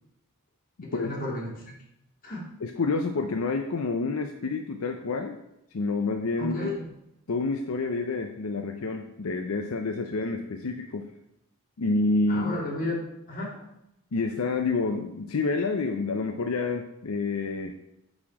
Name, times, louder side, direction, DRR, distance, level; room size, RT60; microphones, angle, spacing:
voice 1, 0.8-1.6 2.2-2.4 6.4-6.8 12.3-13.6, left 1 dB, 40° left, -4 dB, 2.2 m, -33 dB
voice 2, 2.6-5.4 5.7-6.6 7.3-11.1 11.8-12.5 14.1-17.7, left 3 dB, 75° left, 4 dB, 0.6 m, -28 dB
8.7 x 4.3 x 4.7 m, 0.86 s
head